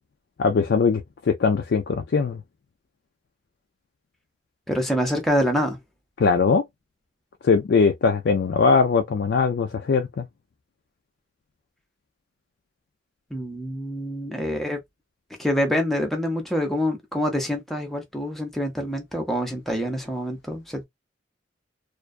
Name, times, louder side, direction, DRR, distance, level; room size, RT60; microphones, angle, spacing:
voice 1, 0.4-1.0 1.3-2.4 6.2-6.6 7.4-10.3, left 5 dB, 65° left, 0.4 m, -20 dB
voice 2, 4.7-5.8 13.3-14.8 15.4-20.8, equal, ahead, 0.5 m, -26 dB
2.5 x 2.2 x 2.2 m
head